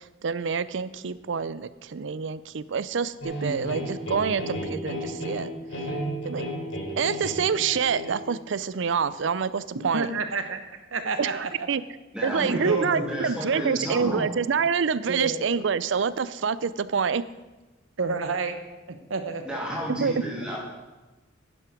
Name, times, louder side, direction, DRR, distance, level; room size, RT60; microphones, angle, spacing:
voice 1, 0.0-5.5 6.2-6.5 7.0-10.1 11.2-11.8 12.2-17.2 19.9-20.1, right 6 dB, 65° right, 17 dB, 0.5 m, -27 dB
sound 1, 3.2-8.2, equal, 85° left, 3.0 m, -33 dB
voice 2, 3.4-3.9 9.7-10.6 10.9-11.7 12.6-13.1 15.1-15.4 18.0-18.6 18.9-19.6, right 3 dB, 90° right, 8 dB, 1.2 m, -30 dB
voice 3, 12.1-14.3 19.4-20.6, equal, 5° right, -4 dB, 2.6 m, -31 dB
10.5 x 10.5 x 5.1 m, 1.1 s
head